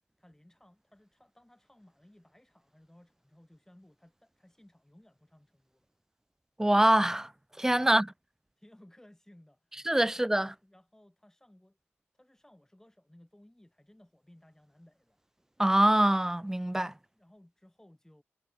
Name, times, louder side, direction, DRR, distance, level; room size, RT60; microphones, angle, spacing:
voice 1, 0.2-5.9 7.7-8.1 8.6-11.8 12.1-15.2 16.8-18.2, left 1 dB, 10° left, 3.7 m, -60 dB
voice 2, 6.6-7.3 7.6-8.1 9.9-10.5 15.6-16.9, right 1 dB, 10° right, 0.4 m, -24 dB
cardioid pair, 55°, 5 cm